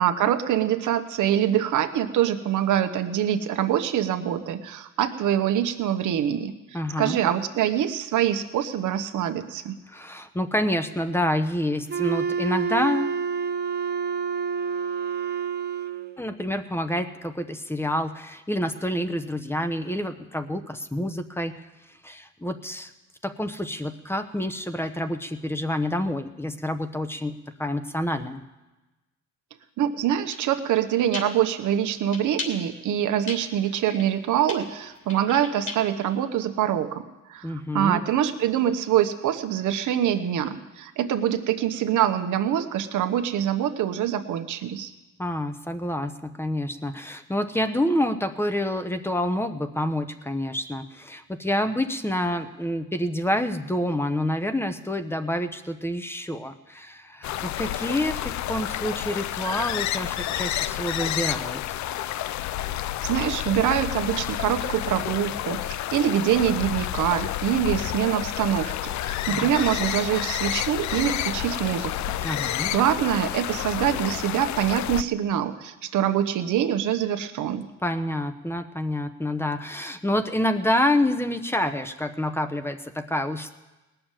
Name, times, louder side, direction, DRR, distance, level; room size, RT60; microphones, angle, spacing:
voice 1, 0.0-9.8 29.8-44.9 63.0-77.7, right 10 dB, 80° right, 8 dB, 1.1 m, -25 dB
voice 2, 6.7-7.2 9.9-13.2 16.2-21.5 22.0-22.9 23.2-27.3 27.6-28.4 37.4-38.0 45.2-61.6 69.3-69.5 72.2-72.7 77.8-83.5, left 1 dB, 10° left, 10 dB, 0.9 m, -28 dB
Wind instrument woodwind instrument, 11.9-16.2, right 6 dB, 35° right, 0.8 m, -28 dB
sound 1, 30.3-30.4 31.1-31.2 32.1-32.5 33.3-33.4 33.6-34.2 34.5-36.0, left 3 dB, 40° left, 3.3 m, -34 dB
sound 2, 57.2-75.0, left 13 dB, 70° left, 0.5 m, -30 dB
19.0 x 7.0 x 9.0 m, 1.1 s
cardioid pair, 90°, 30 cm